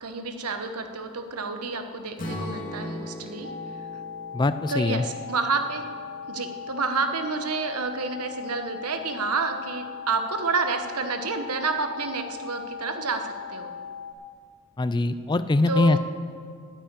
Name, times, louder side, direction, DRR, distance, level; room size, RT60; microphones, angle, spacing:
voice 1, 0.0-3.5 4.7-5.9 6.3-13.7 15.7-16.0, right 4 dB, 90° right, 7 dB, 1.1 m, -29 dB
Strum, 2.2-6.4, left 1 dB, 35° left, 2.2 m, -38 dB
sound 1, 3.4-14.1, left 6 dB, 70° left, 1.5 m, -39 dB
voice 2, 4.3-5.0 14.8-16.0, left 2 dB, 20° left, 13 dB, 0.3 m, -22 dB
9.8 x 8.9 x 8.8 m, 2.1 s
head